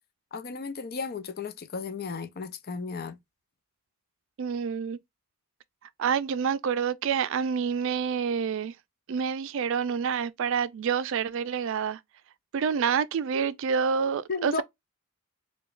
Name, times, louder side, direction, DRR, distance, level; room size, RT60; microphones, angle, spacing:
voice 1, 0.3-3.2 14.3-14.6, left 4 dB, 45° left, 0.6 m, -34 dB
voice 2, 4.4-5.0 6.0-8.7 9.1-12.0 12.5-14.6, right 6 dB, 65° right, 0.4 m, -27 dB
4.8 x 2.3 x 2.4 m
head